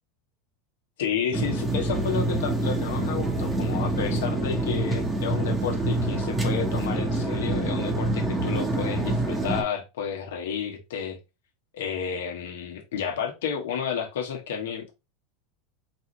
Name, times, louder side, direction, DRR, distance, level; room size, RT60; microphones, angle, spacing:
voice 1, 1.0-11.2 11.7-14.9, left 7 dB, 85° left, 3 dB, 1.2 m, -31 dB
sound 1, 1.3-9.6, right 2 dB, 10° right, 1.0 m, -26 dB
4.7 x 2.6 x 3.1 m, 0.26 s
supercardioid pair, 130°, 0 cm